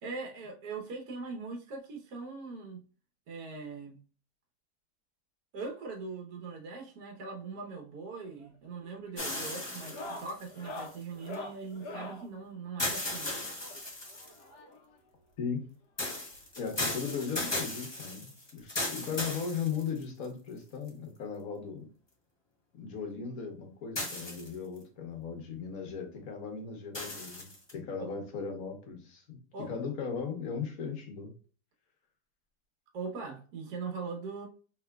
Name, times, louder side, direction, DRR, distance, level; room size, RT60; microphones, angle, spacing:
voice 1, 0.0-2.8 3.3-4.0 5.5-13.3 29.5-29.7 32.9-34.5, right 4 dB, 65° right, 1.5 m, -41 dB
sound 1, 8.2-8.6 8.8-9.2 9.7-12.3 13.6-15.0 16.0-16.1 16.3-16.4 16.9-17.0 18.3-18.4 19.7-19.8, left 2 dB, 80° left, 1.4 m, -44 dB
sound 2, 9.2-11.3 12.8-14.4 16.0-20.3 20.9-21.0 24.0-24.8 26.9-27.7, left 1 dB, 20° left, 0.8 m, -36 dB
voice 2, 16.6-21.9 22.7-31.3, left 6 dB, 60° left, 1.4 m, -37 dB
4.7 x 3.0 x 2.3 m
omnidirectional pair, 1.8 m